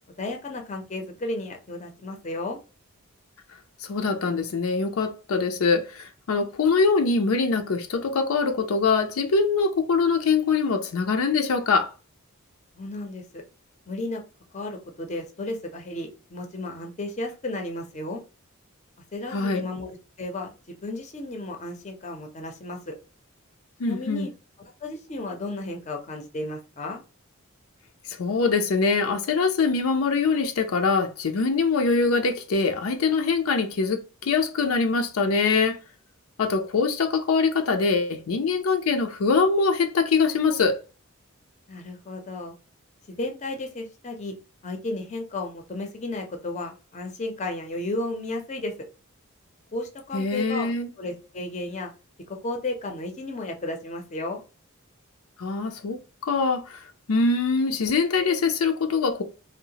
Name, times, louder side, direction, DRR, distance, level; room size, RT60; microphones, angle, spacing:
voice 1, 0.2-2.6 12.8-13.4 13.9-14.2 14.5-18.2 19.1-22.9 23.9-24.3 24.8-27.0 41.7-42.5 43.2-44.3 44.6-48.7 49.7-50.7 51.0-51.9 52.3-54.4, left 2 dB, 35° left, 0.5 m, -33 dB
voice 2, 3.8-11.9 19.3-19.6 23.8-24.3 28.1-35.8 36.4-40.8 50.1-50.9 55.4-59.2, left 4 dB, 85° left, 0.5 m, -23 dB
2.8 x 2.0 x 2.8 m
head